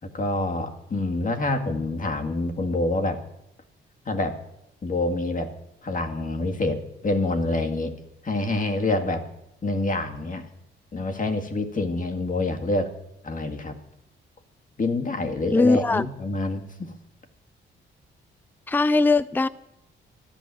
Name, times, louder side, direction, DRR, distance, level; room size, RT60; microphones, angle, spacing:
voice 1, 0.1-3.2 4.1-4.4 4.8-5.5 5.8-7.9 8.2-9.2 9.6-10.5 10.9-12.9 13.2-13.8 14.8-16.9, left 2 dB, 40° left, 5 dB, 2.0 m, -26 dB
voice 2, 15.5-16.1 18.7-19.5, left 3 dB, 10° left, 17 dB, 0.5 m, -20 dB
13.5 x 10.0 x 7.6 m, 0.82 s
cardioid pair, 75°, 21 cm